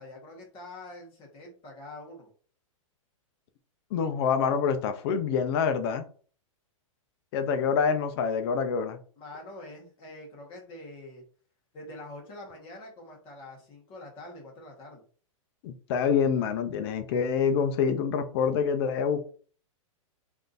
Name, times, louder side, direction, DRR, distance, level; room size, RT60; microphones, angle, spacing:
voice 1, 0.0-2.3 9.2-11.2 11.7-15.0, left 1 dB, 30° left, -1 dB, 1.3 m, -45 dB
voice 2, 3.9-6.0 7.3-9.0 15.6-19.3, left 6 dB, 45° left, 9 dB, 0.5 m, -26 dB
3.5 x 2.6 x 2.5 m, 0.43 s
hypercardioid pair, 130°, 18 cm